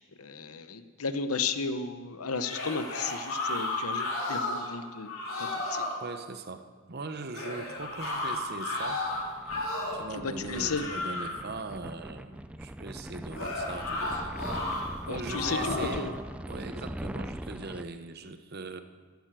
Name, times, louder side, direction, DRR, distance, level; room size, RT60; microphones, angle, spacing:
voice 1, 0.0-5.1 5.4-5.8 10.1-10.8 15.0-16.1, left 4 dB, 90° left, 10 dB, 1.0 m, -34 dB
sound 1, 2.3-4.7 5.0-6.0 7.3-10.1 10.5-11.4 13.3-14.8 15.3-16.0, left 2 dB, 70° left, 4.0 m, -33 dB
voice 2, 6.0-9.0 9.9-16.2 16.5-18.8, right 3 dB, 50° right, 9 dB, 0.9 m, -40 dB
sound 2, 7.9-17.8, right 1 dB, 5° right, 0.4 m, -41 dB
14.0 x 11.0 x 7.6 m, 1.5 s
head